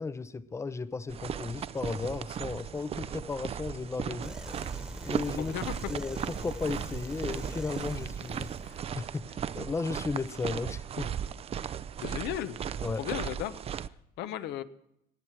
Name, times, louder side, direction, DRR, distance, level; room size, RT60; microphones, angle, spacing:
voice 1, 0.0-4.4 5.0-5.6 5.9-11.2 11.6-11.8 12.8-13.1, left 4 dB, 15° left, 0.5 m, -35 dB
sound 1, 1.1-13.9, right 8 dB, 35° right, 0.4 m, -37 dB
sound 2, 4.2-9.1, right 1 dB, 5° right, 1.2 m, -43 dB
voice 2, 5.4-5.8 12.0-12.6 13.0-13.6 14.2-14.6, left 11 dB, 85° left, 0.8 m, -35 dB
20.0 x 7.5 x 4.6 m
cardioid pair, 110°, 17 cm